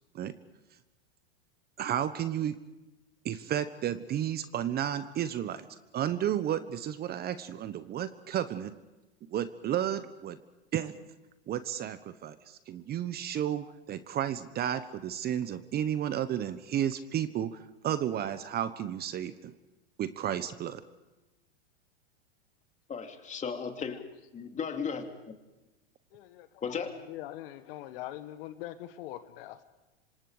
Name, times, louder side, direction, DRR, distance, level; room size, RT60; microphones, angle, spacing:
voice 1, 1.8-2.5 3.2-5.7 5.9-8.7 9.3-10.4 10.7-10.9 11.5-19.5 20.0-20.8, right 10 dB, 30° right, 13 dB, 1.1 m, -32 dB
voice 2, 22.9-24.0 24.3-25.3 26.6-26.9, left 6 dB, 20° left, 5 dB, 3.0 m, -35 dB
voice 3, 26.1-26.6 27.1-29.6, left 14 dB, 55° left, 11 dB, 1.6 m, -42 dB
26.5 x 26.0 x 5.1 m, 1.1 s
hypercardioid pair, 115°, 33 cm